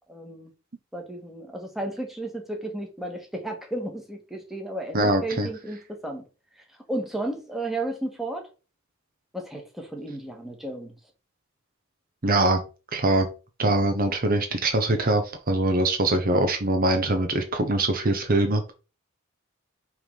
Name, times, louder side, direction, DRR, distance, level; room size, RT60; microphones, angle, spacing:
voice 1, 0.1-0.5 0.9-6.2 6.9-8.5 9.3-10.9, right 1 dB, ahead, 1.4 m, -33 dB
voice 2, 4.9-5.5 12.2-12.6 12.9-13.3 13.6-18.7, right 2 dB, 45° right, 0.9 m, -23 dB
5.7 x 3.4 x 5.5 m
head